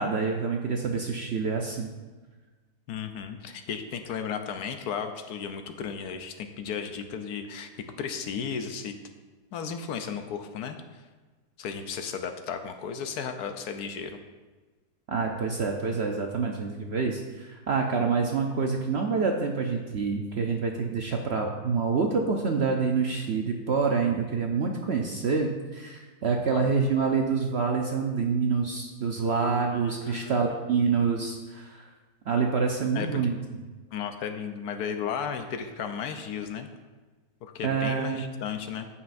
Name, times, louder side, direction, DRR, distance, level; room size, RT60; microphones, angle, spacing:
voice 1, 0.0-1.9 15.1-31.9 32.3-33.4 37.6-38.2, right 5 dB, 60° right, 2 dB, 0.7 m, -27 dB
voice 2, 2.9-8.9 9.5-11.0 11.6-14.2 26.5-26.7 29.7-30.4 32.9-33.3 33.9-36.7 37.4-38.9, left 7 dB, 75° left, 7 dB, 1.2 m, -34 dB
14.5 x 5.6 x 2.6 m, 1.3 s
omnidirectional pair, 1.7 m